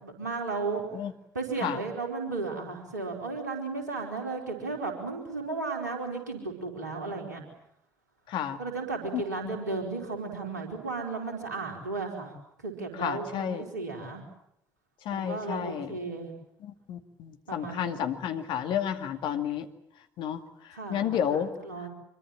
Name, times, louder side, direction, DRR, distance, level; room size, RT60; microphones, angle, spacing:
voice 1, 0.0-0.8 1.3-7.4 8.6-12.3 12.6-14.2 15.1-16.3 17.5-18.0 20.7-21.9, right 3 dB, 80° right, 2 dB, 4.5 m, -34 dB
voice 2, 8.3-8.6 9.1-9.2 13.0-13.6 15.1-15.9 16.6-19.7 20.2-20.4 20.9-21.5, left 9 dB, 60° left, 7 dB, 2.3 m, -31 dB
25.5 x 23.5 x 8.9 m, 0.77 s
figure-of-eight pair, 45°, 9 cm